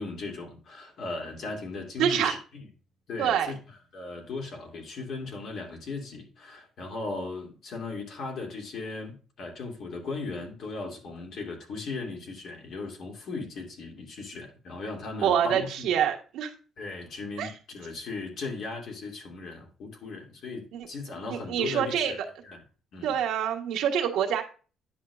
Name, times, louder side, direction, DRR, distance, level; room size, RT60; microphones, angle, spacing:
voice 1, 0.0-2.7 3.1-3.6 3.9-15.9 16.8-22.2 22.4-22.6 22.9-23.1, left 3 dB, 60° left, 1 dB, 2.6 m, -37 dB
voice 2, 2.0-2.3 3.2-3.5 15.2-16.5 17.4-17.5 20.7-20.9 21.5-22.1 23.0-24.4, right 9 dB, 90° right, 1 dB, 1.5 m, -26 dB
10.0 x 6.6 x 2.4 m, 0.36 s
cardioid pair, 130°, 0 cm